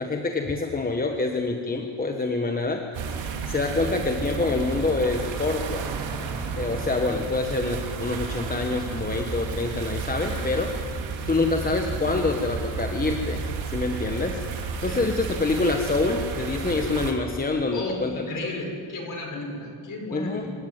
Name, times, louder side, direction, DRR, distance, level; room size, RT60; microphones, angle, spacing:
voice 1, 0.0-3.1 3.5-5.9 6.6-10.7 11.3-18.3 20.1-20.5, left 3 dB, 20° left, 3 dB, 1.3 m, -26 dB
sound 1, 2.9-17.1, right 5 dB, 70° right, 3.0 m, -32 dB
voice 2, 17.7-20.5, left 2 dB, 40° left, 1 dB, 5.9 m, -33 dB
25.5 x 13.0 x 9.5 m, 2.4 s
cardioid pair, 125°, 47 cm